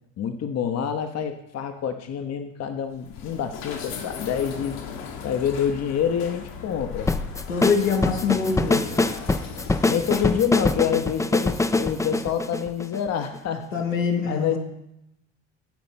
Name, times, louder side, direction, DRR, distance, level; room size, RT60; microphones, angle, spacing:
voice 1, 0.2-4.8 5.2-7.1 9.8-13.7 14.2-14.6, left 8 dB, 45° left, 8 dB, 1.0 m, -27 dB
sound 1, 2.9-10.7, left 6 dB, 60° left, 1.6 m, -37 dB
sound 2, 7.1-13.4, left 2 dB, 10° left, 0.5 m, -24 dB
voice 2, 7.5-8.8 13.7-14.6, left 5 dB, 85° left, 0 dB, 1.8 m, -24 dB
11.5 x 5.1 x 5.8 m, 0.85 s
hypercardioid pair, 55°, 37 cm